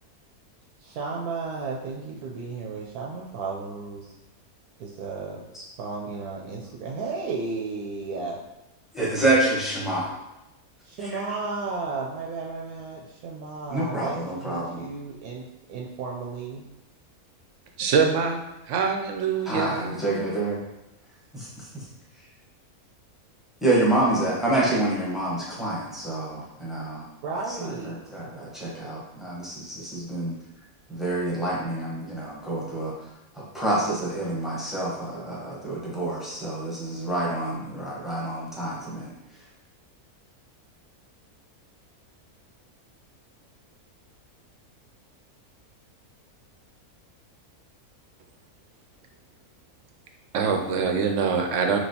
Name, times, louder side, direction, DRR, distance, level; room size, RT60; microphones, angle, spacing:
voice 1, 0.8-4.1 4.8-5.4 5.8-8.4 10.8-16.6 27.2-28.0, right 4 dB, 90° right, -2 dB, 1.1 m, -34 dB
voice 2, 8.9-10.1 11.0-11.4 13.7-14.9 19.4-20.6 21.3-21.9 23.6-27.0 27.5-30.3 30.9-32.9 33.3-39.1, right 2 dB, ahead, -6 dB, 0.9 m, -27 dB
voice 3, 17.8-18.4 18.7-20.0 50.3-51.8, right 5 dB, 65° right, 3 dB, 0.8 m, -24 dB
6.1 x 2.9 x 2.8 m, 0.94 s
omnidirectional pair, 1.6 m